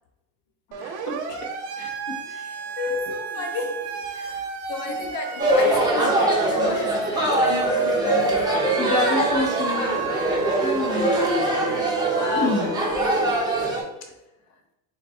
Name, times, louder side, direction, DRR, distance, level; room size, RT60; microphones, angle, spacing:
Siren, 0.7-13.1, right 5 dB, 55° right, 0.8 m, -30 dB
voice 1, 0.8-1.5 1.8-2.2 4.3-4.4 4.9-5.1 8.8-10.1 10.6-11.2 12.3-12.8, left 3 dB, 35° left, 1 dB, 0.6 m, -28 dB
voice 2, 2.3-4.4 4.7-8.5 10.3-10.7, left 4 dB, 70° left, 4 dB, 0.9 m, -34 dB
sound 1, 5.4-13.8, right 1 dB, 10° right, 0.7 m, -23 dB
4.0 x 2.2 x 4.2 m, 0.95 s
supercardioid pair, 130°, 49 cm